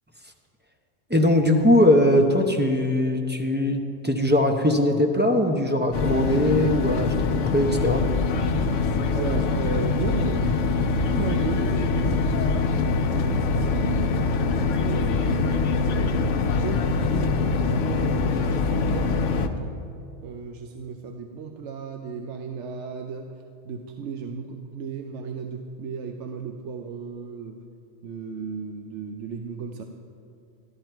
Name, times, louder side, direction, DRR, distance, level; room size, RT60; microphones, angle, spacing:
voice 1, 1.1-8.1, left 1 dB, 10° right, 2 dB, 0.6 m, -21 dB
sound 1, 5.9-19.5, left 4 dB, 85° left, 1.0 m, -24 dB
voice 2, 9.1-12.3 13.1-19.7 20.2-27.6 28.0-29.8, right 5 dB, 75° right, 5 dB, 1.0 m, -35 dB
12.5 x 12.0 x 4.5 m, 2.6 s
omnidirectional pair, 1.2 m